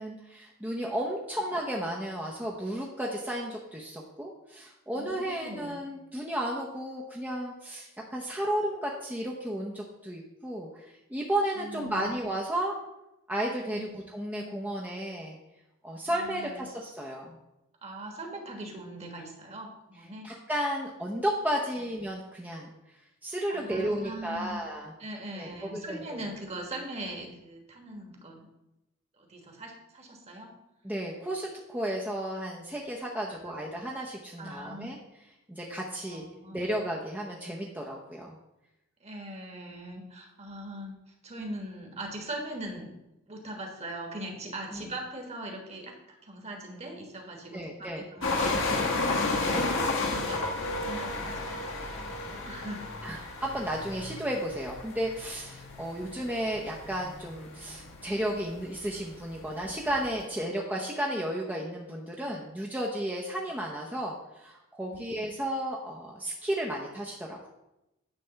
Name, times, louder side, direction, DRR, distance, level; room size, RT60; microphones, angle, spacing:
voice 1, 0.0-12.8 13.3-15.4 15.8-17.4 20.2-22.7 23.2-24.9 25.3-26.2 30.8-35.0 35.5-36.2 36.5-38.4 44.7-44.8 47.5-48.0 49.4-49.7 53.0-67.5, right 1 dB, 5° right, -3 dB, 0.7 m, -33 dB
voice 2, 4.9-5.8 11.6-12.1 13.7-13.9 16.0-16.7 17.8-20.3 23.5-24.6 25.0-28.5 29.2-30.6 33.3-33.6 34.4-34.9 36.1-36.7 39.0-41.0 41.2-42.9 43.3-49.6 50.0-53.3 56.0-56.1 63.4-63.5 64.9-65.0, right 1 dB, 30° right, 2 dB, 1.4 m, -41 dB
sound 1, 48.2-60.2, left 2 dB, 60° left, 1.3 m, -33 dB
9.9 x 3.4 x 6.8 m, 0.91 s
head